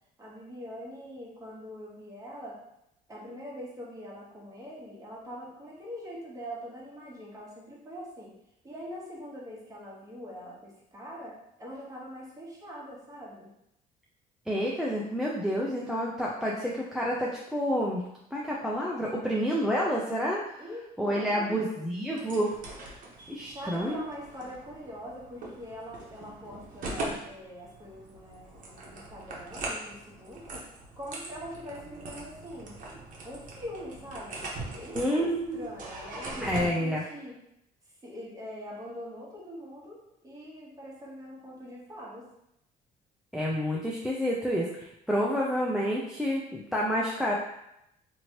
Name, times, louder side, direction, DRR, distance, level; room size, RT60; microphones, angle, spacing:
voice 1, 0.2-2.6 3.1-8.3 8.6-13.5 20.6-20.8 21.1-22.0 23.5-30.7 30.9-32.8 33.2-37.4 38.0-42.3, equal, 20° right, -5 dB, 1.1 m, -43 dB
voice 2, 14.5-18.0 18.3-20.6 21.0-22.5 23.3-24.0 35.0-35.6 36.4-37.0 43.3-47.3, equal, ahead, -4 dB, 0.4 m, -29 dB
sound 1, 22.1-36.7, right 2 dB, 50° right, 0.8 m, -41 dB
2.9 x 2.7 x 2.9 m, 0.81 s
cardioid pair, 110°, 17 cm